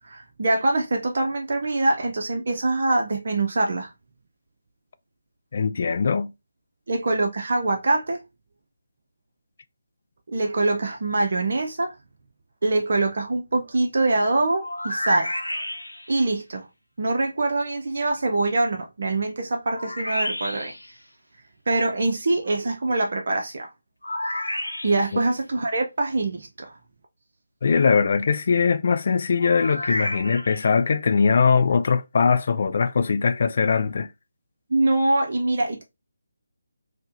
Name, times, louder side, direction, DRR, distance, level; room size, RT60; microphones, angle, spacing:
voice 1, 0.1-3.9 6.9-8.2 10.3-11.9 12.6-15.3 16.1-16.7 17.0-20.7 21.7-23.7 24.8-26.7 34.7-35.8, right 2 dB, 50° right, 0.5 m, -24 dB
voice 2, 5.5-6.3 25.1-25.2 27.6-34.1, left 5 dB, 45° left, 0.3 m, -21 dB
sound 1, 14.6-16.2 19.7-20.9 24.0-25.2 29.4-30.7, left 1 dB, 80° left, 0.7 m, -30 dB
4.3 x 2.1 x 2.5 m
figure-of-eight pair, 150°, 0 cm